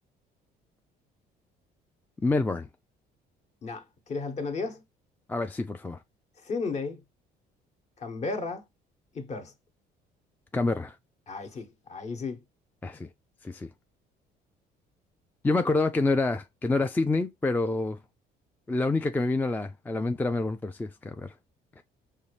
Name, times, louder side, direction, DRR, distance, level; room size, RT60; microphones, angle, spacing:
voice 1, 2.2-2.7 5.3-6.0 10.5-11.0 12.8-13.1 13.4-13.7 15.4-18.0 18.7-21.3, left 3 dB, 10° left, 0.3 m, -27 dB
voice 2, 3.6-4.8 6.4-7.0 8.0-8.6 9.1-9.5 11.3-12.4, left 4 dB, 40° left, 1.1 m, -34 dB
5.5 x 2.5 x 3.2 m
cardioid pair, 110°, 17 cm